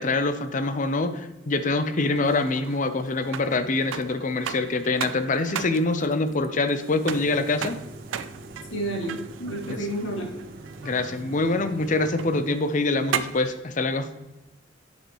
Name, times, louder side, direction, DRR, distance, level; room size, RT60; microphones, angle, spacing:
voice 1, 0.0-7.8 9.7-9.8 10.8-14.1, left 3 dB, 40° left, 10 dB, 0.6 m, -25 dB
sound 1, 2.0-13.6, right 8 dB, 85° right, 0.4 m, -37 dB
sound 2, 7.1-12.4, right 2 dB, 55° right, 0.9 m, -43 dB
voice 2, 8.7-10.4, right 1 dB, 75° left, 0 dB, 2.0 m, -30 dB
8.1 x 6.8 x 3.0 m, 1.0 s
head